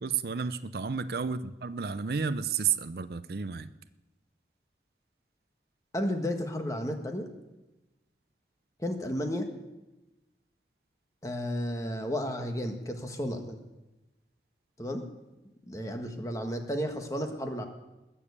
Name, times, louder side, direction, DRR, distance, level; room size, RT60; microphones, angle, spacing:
voice 1, 0.0-3.7, right 6 dB, 60° right, 13 dB, 0.5 m, -31 dB
voice 2, 5.9-7.3 8.8-9.5 11.2-13.6 14.8-15.0 15.7-17.6, equal, 20° left, 5 dB, 1.4 m, -33 dB
20.5 x 7.1 x 8.3 m, 1.0 s
head